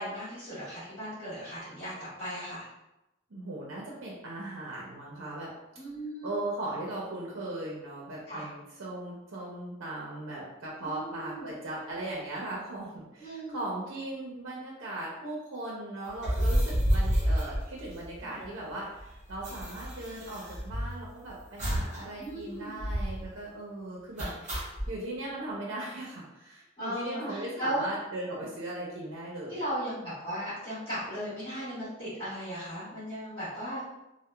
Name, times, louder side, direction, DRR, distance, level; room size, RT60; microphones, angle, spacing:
voice 1, 0.0-1.9 2.2-2.6 5.8-6.3 8.3-8.5 10.8-11.4 13.2-13.6 18.3-18.5 22.2-22.7 26.8-27.8 29.5-33.9, equal, 25° left, -15 dB, 1.3 m, -36 dB
voice 2, 3.3-5.5 6.2-24.3 24.9-29.6, right 2 dB, 75° right, -4 dB, 0.5 m, -38 dB
sound 1, 16.1-18.4 18.7-18.8 19.0-21.1 21.6-22.0 22.3-22.4 22.8-23.3 24.2-24.9, equal, 40° right, 0.8 m, -29 dB
2.8 x 2.0 x 2.2 m, 0.94 s
head